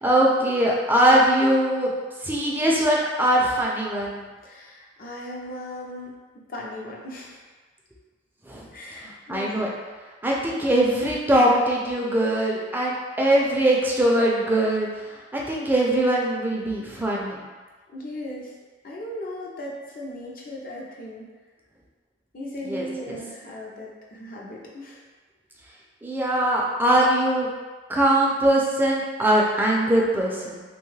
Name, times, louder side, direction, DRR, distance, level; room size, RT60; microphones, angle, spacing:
voice 1, 0.0-1.9 2.2-4.2 8.5-8.7 9.0-9.7 10.2-14.9 15.3-17.5 22.7-23.2 26.0-27.5 27.9-30.6, right 1 dB, 10° right, -3 dB, 0.4 m, -21 dB
voice 2, 4.4-6.1 6.5-7.4 8.7-9.5 17.9-18.5 18.8-21.3 22.3-25.0, left 1 dB, 50° left, -3 dB, 0.6 m, -37 dB
3.0 x 2.3 x 3.1 m, 1.3 s
head